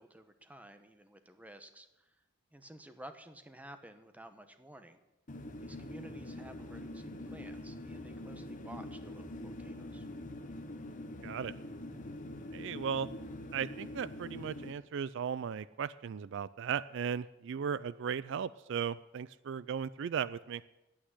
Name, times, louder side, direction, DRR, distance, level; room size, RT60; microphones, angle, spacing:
voice 1, 0.0-2.1 2.5-5.0 5.6-10.1, right 1 dB, 10° right, 8 dB, 1.0 m, -53 dB
sound 1, 5.3-14.7, left 1 dB, 40° left, 1.1 m, -44 dB
voice 2, 11.2-11.5 12.5-13.1 13.5-20.6, right 7 dB, 65° right, 17 dB, 0.4 m, -36 dB
10.0 x 8.9 x 9.7 m, 0.95 s
head